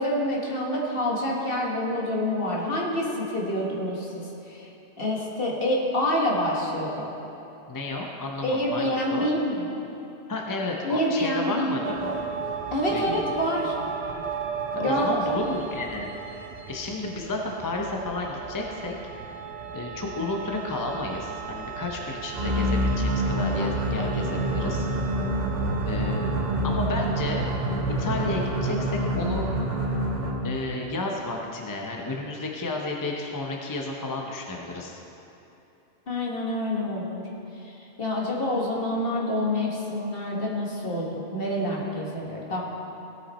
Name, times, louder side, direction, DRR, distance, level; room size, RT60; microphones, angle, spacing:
voice 1, 0.0-4.7 5.0-7.1 8.4-9.7 10.8-11.9 12.7-13.7 14.8-15.1 36.1-37.2 37.6-42.6, left 1 dB, 55° left, -3 dB, 1.6 m, -27 dB
voice 2, 7.7-9.3 10.3-12.2 12.9-13.1 14.7-16.1 16.7-18.9 19.7-24.9 25.8-26.3 26.6-27.5 28.0-29.5 30.4-35.0, left 2 dB, 20° left, 0 dB, 0.7 m, -32 dB
sound 1, 11.8-28.8, right 6 dB, 70° right, 1.0 m, -35 dB
sound 2, 22.3-30.6, right 1 dB, 40° right, 1.1 m, -27 dB
16.0 x 5.7 x 4.3 m, 2.9 s
omnidirectional pair, 1.2 m